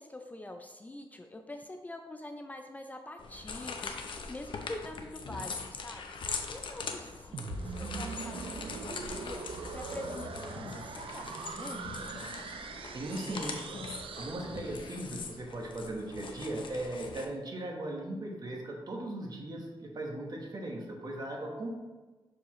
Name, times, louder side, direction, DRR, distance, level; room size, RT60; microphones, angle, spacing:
voice 1, 0.0-6.0 6.5-12.1, left 1 dB, 15° left, 5 dB, 0.4 m, -45 dB
sound 1, 3.2-17.2, left 4 dB, 60° left, 0.6 m, -42 dB
sound 2, 7.3-15.2, right 5 dB, 70° right, 0.4 m, -42 dB
voice 2, 12.9-13.6 14.2-21.7, right 1 dB, 45° right, 0 dB, 1.2 m, -38 dB
6.5 x 4.7 x 3.1 m, 1.2 s
wide cardioid pair, 120°, 9 cm